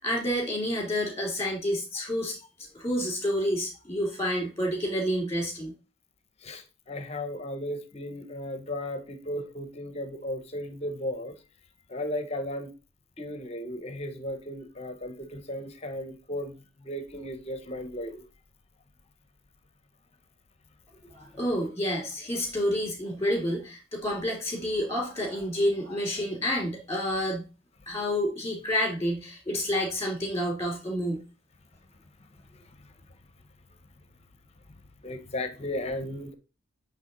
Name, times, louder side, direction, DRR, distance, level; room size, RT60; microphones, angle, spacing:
voice 1, 0.0-2.4 2.7-5.7 21.1-27.4 27.9-31.2, equal, 15° left, 2.7 m, -29 dB
voice 2, 6.4-11.4 11.9-12.7 13.2-18.3 32.2-32.3 32.6-32.9 34.7-36.3, left 1 dB, 30° left, 0.7 m, -35 dB
8.2 x 3.2 x 3.8 m
head